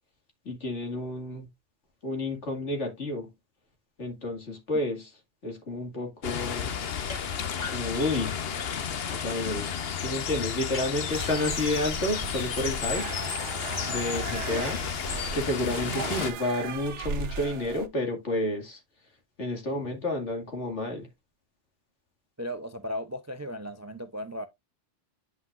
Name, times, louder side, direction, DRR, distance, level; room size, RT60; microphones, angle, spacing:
voice 1, 0.4-1.5 2.0-3.3 4.0-5.1 5.4-6.7 7.7-8.4 9.1-13.1 13.9-14.8 15.3-18.8 19.4-21.1, left 1 dB, 80° left, 2.4 m, -30 dB
sound 1, 6.2-16.3, left 7 dB, 60° left, 1.0 m, -32 dB
sound 2, 7.1-7.2 7.6-8.8 10.7-12.7, left 3 dB, 45° left, 1.3 m, -43 dB
sound 3, 11.1-17.9, right 5 dB, 75° right, 1.1 m, -38 dB
voice 2, 22.4-24.5, equal, 20° right, 0.4 m, -36 dB
9.3 x 5.8 x 2.4 m
omnidirectional pair, 1.2 m